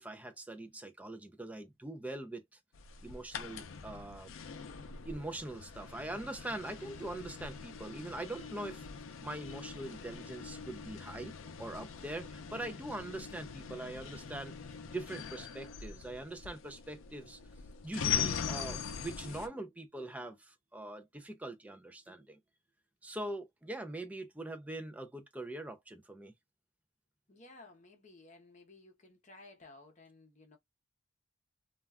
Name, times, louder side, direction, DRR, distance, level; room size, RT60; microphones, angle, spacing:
voice 1, 0.0-2.4 3.0-4.3 5.0-8.9 9.2-11.3 11.6-14.5 14.8-17.4 17.8-22.4 23.0-26.3, right 2 dB, 5° right, 0.3 m, -42 dB
sound 1, 2.7-19.5, left 7 dB, 80° left, 0.4 m, -42 dB
voice 2, 27.3-30.6, left 2 dB, 35° left, 0.7 m, -56 dB
2.3 x 2.2 x 3.3 m
head